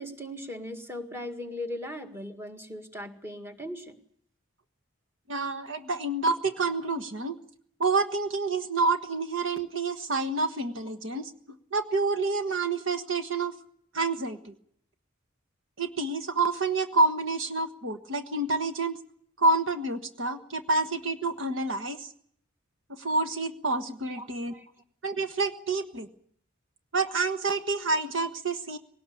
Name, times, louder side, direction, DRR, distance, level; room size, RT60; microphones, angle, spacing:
voice 1, 0.0-4.0 24.2-24.7, left 1 dB, 10° right, 5 dB, 1.9 m, -38 dB
voice 2, 5.3-7.4 7.8-11.3 11.7-13.5 13.9-14.5 15.8-19.0 19.4-22.1 23.0-24.5 25.0-26.1 26.9-28.8, right 3 dB, 65° right, 8 dB, 1.4 m, -28 dB
20.5 x 18.5 x 8.6 m, 0.64 s
head